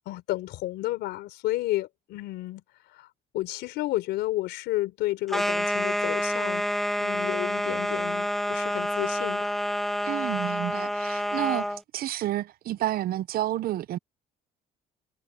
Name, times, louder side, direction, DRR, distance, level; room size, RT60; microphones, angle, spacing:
voice 1, 0.1-2.6 2.9-3.1 3.3-6.7 7.0-9.5, left 16 dB, 85° left, 4.1 m, -31 dB
sound 1, 5.3-11.8, equal, ahead, 0.6 m, -28 dB
voice 2, 10.0-11.7 11.9-14.0, right 13 dB, 60° right, 0.7 m, -30 dB
cardioid pair, 110°, 17 cm